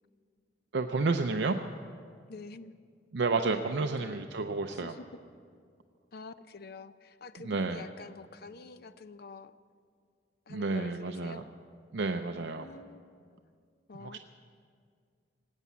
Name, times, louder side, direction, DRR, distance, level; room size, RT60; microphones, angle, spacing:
voice 1, 0.7-1.6 3.1-4.9 7.4-7.9 10.5-11.4 11.9-12.7 14.0-14.2, right 3 dB, 65° right, 6 dB, 0.5 m, -30 dB
voice 2, 2.3-2.7 3.7-4.2 4.7-5.1 6.1-9.5 10.5-11.5 12.3-13.2 13.9-14.2, left 3 dB, 55° left, 13 dB, 0.6 m, -47 dB
19.5 x 8.3 x 8.4 m, 2.2 s
head